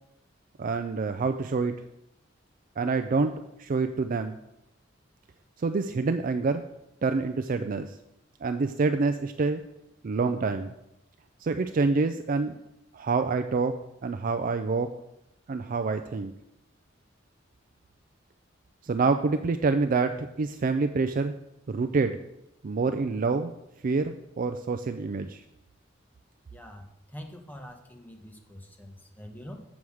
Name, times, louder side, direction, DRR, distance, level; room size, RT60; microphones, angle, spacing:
voice 1, 0.6-1.7 2.8-3.3 3.6-4.4 5.6-6.6 7.0-7.9 8.4-9.6 10.0-10.7 11.4-12.5 12.9-13.8 14.0-14.9 15.5-16.3 18.8-21.3 21.7-22.2 22.6-23.5 23.8-25.4, right 4 dB, 45° right, 8 dB, 0.4 m, -27 dB
voice 2, 26.5-29.6, equal, 10° left, 3 dB, 1.0 m, -45 dB
7.8 x 7.2 x 4.8 m, 0.85 s
head